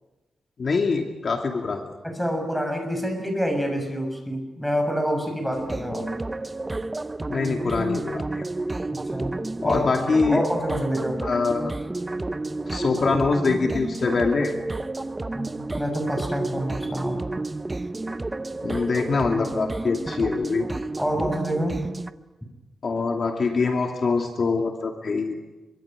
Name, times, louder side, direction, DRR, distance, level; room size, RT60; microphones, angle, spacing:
voice 1, 0.6-1.9 7.3-8.4 9.6-10.4 11.2-11.7 12.7-14.5 18.6-20.7 22.8-25.3, left 4 dB, 50° left, 2 dB, 2.7 m, -24 dB
voice 2, 2.0-6.1 9.1-9.3 9.6-9.8 10.1-11.2 15.3-17.2 21.0-21.8, equal, ahead, 4 dB, 6.8 m, -27 dB
sound 1, 5.5-22.1, right 2 dB, 20° right, 0.9 m, -31 dB
25.5 x 24.5 x 8.8 m, 1.1 s
wide cardioid pair, 120°, 0 cm